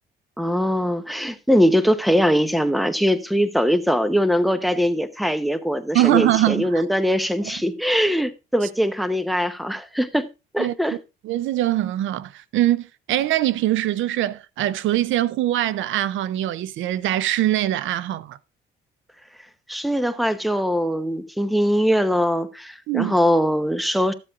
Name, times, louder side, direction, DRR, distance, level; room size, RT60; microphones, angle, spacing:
voice 1, 0.4-10.3 10.5-11.0 19.7-24.1, equal, ahead, 0.8 m, -21 dB
voice 2, 5.9-6.8 10.6-10.7 11.2-18.4 22.9-23.1, right 14 dB, 80° right, 0.5 m, -22 dB
13.0 x 7.6 x 2.4 m
cardioid pair, 90°, 20 cm